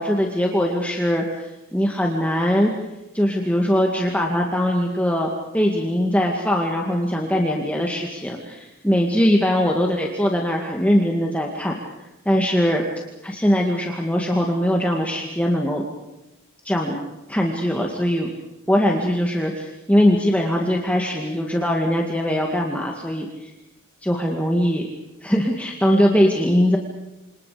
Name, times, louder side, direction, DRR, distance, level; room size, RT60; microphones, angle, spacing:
voice 1, 0.0-2.7 3.1-11.8 12.3-12.8 13.2-15.8 16.6-17.0 17.3-18.3 18.7-23.5 24.0-24.8 25.2-26.8, equal, 5° left, 0 dB, 2.1 m, -21 dB
29.5 x 27.0 x 5.2 m, 0.98 s
head